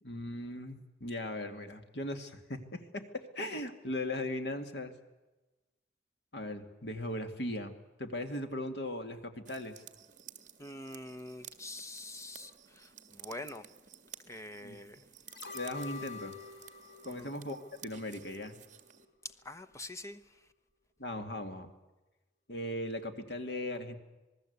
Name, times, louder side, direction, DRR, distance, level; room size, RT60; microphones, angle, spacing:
voice 1, 0.0-4.9 6.3-9.8 14.6-14.8 15.5-16.3 17.0-18.6 21.0-21.7 22.5-23.9, left 1 dB, 65° left, 2.4 m, -38 dB
sound 1, 9.4-19.1, right 10 dB, 45° right, 1.9 m, -54 dB
voice 2, 10.6-13.7 14.3-15.0 17.0-17.3 19.2-20.5, left 1 dB, 15° left, 1.0 m, -45 dB
sound 2, 15.3-18.4 18.8-18.9, left 5 dB, 85° left, 3.5 m, -47 dB
27.0 x 19.5 x 8.2 m
head